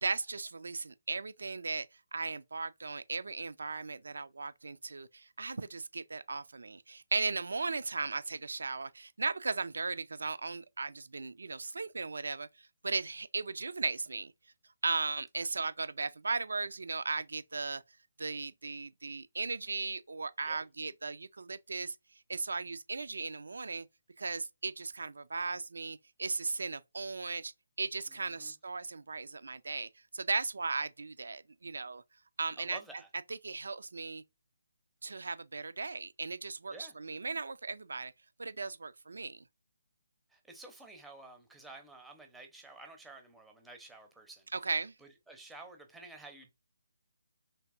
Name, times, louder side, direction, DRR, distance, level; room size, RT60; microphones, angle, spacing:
voice 1, 0.0-1.9 2.1-12.5 12.8-14.3 14.8-17.8 18.2-22.0 22.3-23.9 24.2-27.5 27.8-32.0 32.4-32.8 33.3-34.2 35.0-38.1 38.4-39.4 44.5-44.9, right 4 dB, 70° right, 0.3 m, -37 dB
voice 2, 28.1-28.5 32.6-33.1 36.7-36.9 40.3-44.5 45.0-46.5, right 2 dB, 5° right, 0.6 m, -51 dB
3.3 x 2.8 x 2.4 m
figure-of-eight pair, 150°, 0 cm